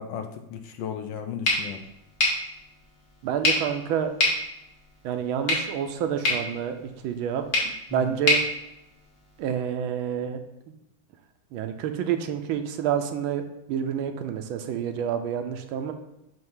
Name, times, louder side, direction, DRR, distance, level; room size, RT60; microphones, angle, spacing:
voice 1, 0.0-1.8 7.9-8.1, left 8 dB, 70° left, 6 dB, 1.2 m, -35 dB
sound 1, 1.4-9.5, left 2 dB, 50° left, 2.1 m, -29 dB
voice 2, 3.2-4.1 5.0-6.8 7.0-7.4 7.9-8.4 9.4-10.4 10.7-10.8 11.5-13.4 13.7-15.9, right 8 dB, 80° right, 7 dB, 1.4 m, -28 dB
7.7 x 2.7 x 5.5 m, 0.89 s
omnidirectional pair, 2.3 m